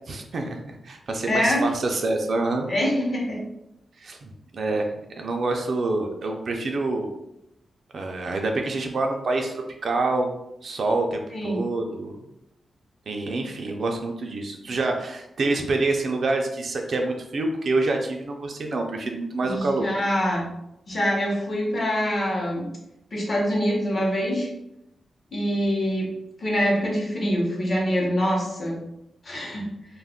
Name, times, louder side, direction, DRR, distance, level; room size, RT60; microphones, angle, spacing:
voice 1, 0.1-2.7 4.0-7.1 7.9-10.3 10.6-12.1 13.1-19.9, right 2 dB, 55° right, 3 dB, 0.4 m, -27 dB
voice 2, 1.3-1.7 2.7-3.4 11.3-11.6 19.4-20.5 20.9-22.7 23.1-24.5 25.3-26.1 26.4-28.8 29.2-29.7, equal, 40° left, -1 dB, 0.8 m, -24 dB
2.3 x 2.1 x 3.5 m, 0.85 s
wide cardioid pair, 115°, 0 cm